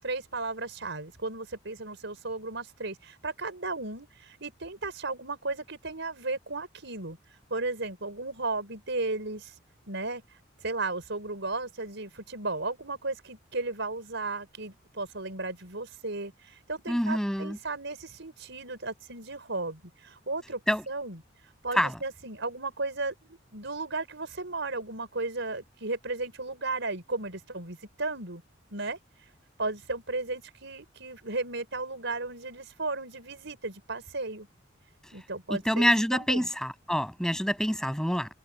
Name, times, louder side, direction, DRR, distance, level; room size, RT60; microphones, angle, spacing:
voice 1, 0.0-7.2 7.5-9.6 9.9-20.6 20.9-21.2 21.6-28.4 28.7-29.3 29.6-34.5 35.1-36.5, right 3 dB, 65° right, 6.0 m, -35 dB
voice 2, 16.9-17.6 20.7-20.8 21.8-21.9 35.5-38.3, equal, 5° left, 7.9 m, -26 dB
head